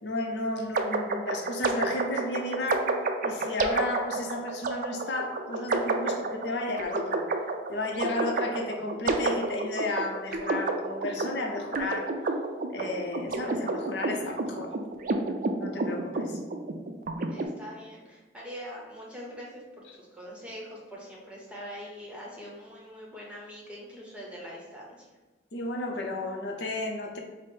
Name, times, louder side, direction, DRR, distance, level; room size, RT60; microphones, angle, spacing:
voice 1, 0.0-3.0 3.2-7.3 7.7-12.1 12.7-14.7 15.6-16.4 25.5-27.2, left 2 dB, 65° left, 1 dB, 0.6 m, -33 dB
sound 1, 0.7-17.4, right 3 dB, 50° right, 0.4 m, -30 dB
voice 2, 17.3-25.1, equal, 5° right, -4 dB, 0.9 m, -43 dB
4.8 x 2.0 x 4.4 m, 1.3 s
head